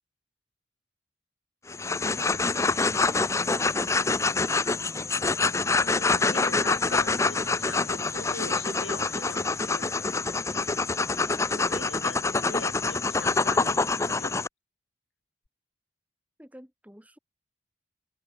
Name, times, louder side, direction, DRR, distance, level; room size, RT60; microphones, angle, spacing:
sound 1, 1.7-14.5, left 3 dB, 15° left, 0.5 m, -26 dB
voice 1, 3.1-4.5 16.4-17.2, equal, 10° right, 4.2 m, -48 dB
voice 2, 5.7-10.1 11.5-14.3, left 3 dB, 90° left, 7.3 m, -42 dB
head